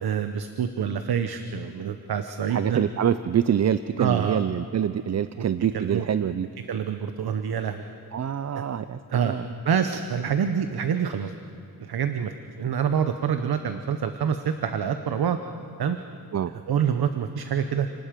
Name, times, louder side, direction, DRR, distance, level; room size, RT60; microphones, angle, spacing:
voice 1, 0.0-2.8 4.0-4.4 5.4-5.5 5.7-6.1 6.6-7.8 8.5-8.6 9.1-9.3 9.6-11.3 11.8-12.3 12.6-15.4 15.8-16.0 16.5-17.9, right 7 dB, 85° right, 8 dB, 0.9 m, -26 dB
voice 2, 2.5-6.5 8.1-9.4 16.3-16.5, right 9 dB, 45° right, 13 dB, 0.5 m, -25 dB
30.0 x 19.5 x 5.2 m, 2.4 s
wide cardioid pair, 125°, 37 cm